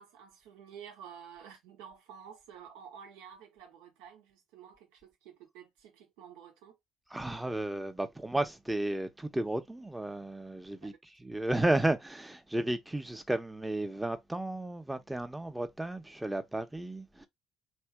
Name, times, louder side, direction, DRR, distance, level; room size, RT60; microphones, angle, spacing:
voice 1, 0.0-6.8 10.8-10.9, right 8 dB, 75° right, 1.0 m, -51 dB
voice 2, 7.1-10.9 11.2-17.3, right 1 dB, 10° right, 0.8 m, -33 dB
3.5 x 2.7 x 3.4 m
hypercardioid pair, 55°, 0 cm